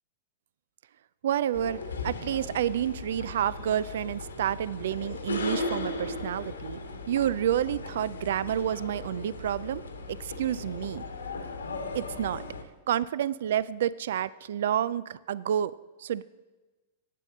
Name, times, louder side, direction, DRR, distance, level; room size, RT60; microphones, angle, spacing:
voice 1, 1.2-6.8 7.1-9.8 10.1-11.1 11.9-12.4 12.9-16.2, right 10 dB, 70° right, 19 dB, 0.3 m, -29 dB
sound 1, 1.5-12.6, left 3 dB, 85° left, 1.3 m, -37 dB
8.5 x 8.3 x 7.5 m, 1.2 s
hypercardioid pair, 105°, 0 cm